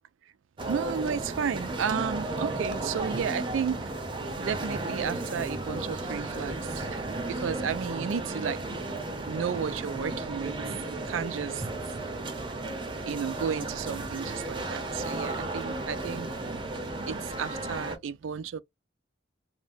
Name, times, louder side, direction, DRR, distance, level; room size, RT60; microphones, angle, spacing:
sound 1, 0.6-18.0, right 2 dB, 25° right, 0.6 m, -34 dB
voice 1, 0.6-3.9 4.4-7.0 7.3-8.6 9.2-10.5 11.0-11.7 13.1-16.3 17.0-18.6, right 7 dB, 85° right, 0.4 m, -33 dB
2.6 x 2.1 x 3.3 m
head